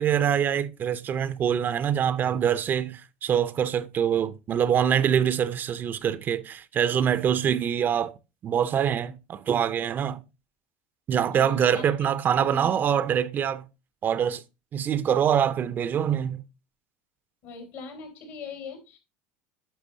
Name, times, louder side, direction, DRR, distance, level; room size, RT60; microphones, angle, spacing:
voice 1, 0.0-8.1 8.4-10.2 11.1-13.6 14.0-14.4 14.7-16.4, right 8 dB, 40° right, 0.5 m, -24 dB
voice 2, 11.3-12.9 17.4-19.0, left 4 dB, 70° left, 3.4 m, -41 dB
10.0 x 5.6 x 2.7 m
supercardioid pair, 105°, 5 cm